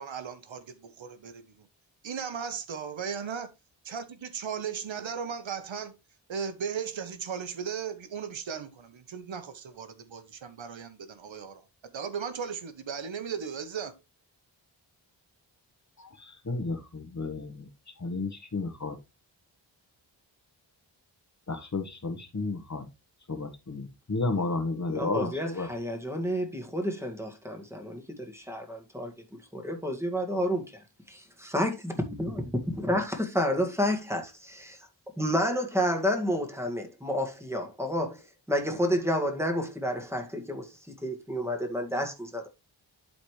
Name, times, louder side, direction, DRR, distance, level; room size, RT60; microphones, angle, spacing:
voice 1, 0.0-1.4 2.0-3.5 3.8-6.0 6.3-13.9, right 7 dB, 80° right, 1.1 m, -36 dB
voice 2, 16.0-17.7 18.0-19.0 21.5-22.9 23.3-25.7, left 3 dB, 40° left, 1.5 m, -32 dB
voice 3, 24.9-29.1 29.5-30.6 31.1-34.8 35.2-38.2 38.5-42.5, equal, 5° right, 2.0 m, -30 dB
11.5 x 4.2 x 3.2 m
wide cardioid pair, 85°, 45 cm